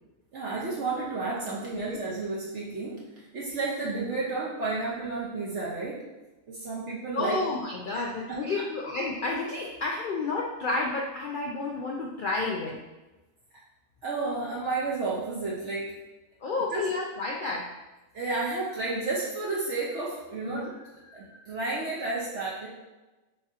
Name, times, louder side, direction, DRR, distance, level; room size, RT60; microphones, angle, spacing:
voice 1, 0.3-6.0 6.5-7.4 7.9-8.0 8.3-8.4 14.0-15.9 16.7-16.8 18.1-22.7, right 3 dB, 60° right, -6 dB, 1.1 m, -32 dB
voice 2, 7.1-12.8 16.4-17.7 20.5-20.7, left 3 dB, 75° left, -2 dB, 0.4 m, -31 dB
7.9 x 2.7 x 2.4 m, 1.1 s
omnidirectional pair, 1.4 m